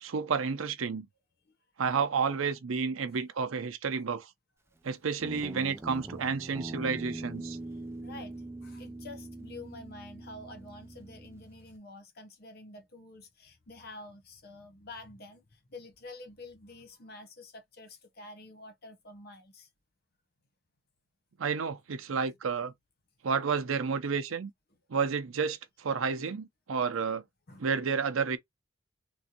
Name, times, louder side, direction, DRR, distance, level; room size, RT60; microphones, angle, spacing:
voice 1, 0.0-1.1 1.8-4.3 4.8-7.6 21.4-22.7 23.2-24.5 24.9-27.2 27.6-28.4, right 5 dB, 80° right, 0.6 m, -31 dB
Guitar, 5.2-11.8, right 2 dB, 15° right, 0.4 m, -42 dB
voice 2, 8.0-19.7 27.5-27.7, left 2 dB, 50° left, 0.8 m, -48 dB
3.1 x 2.5 x 2.8 m
head